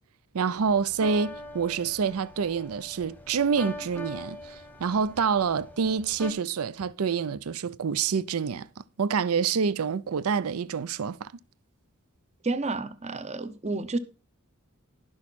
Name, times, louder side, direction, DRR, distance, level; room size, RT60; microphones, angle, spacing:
voice 1, 0.3-8.7 9.0-11.3, right 6 dB, 75° right, 0.5 m, -27 dB
sound 1, 0.6-6.3, equal, 10° left, 0.9 m, -42 dB
voice 2, 12.4-14.0, right 3 dB, 30° right, 0.8 m, -30 dB
11.5 x 6.4 x 4.1 m
head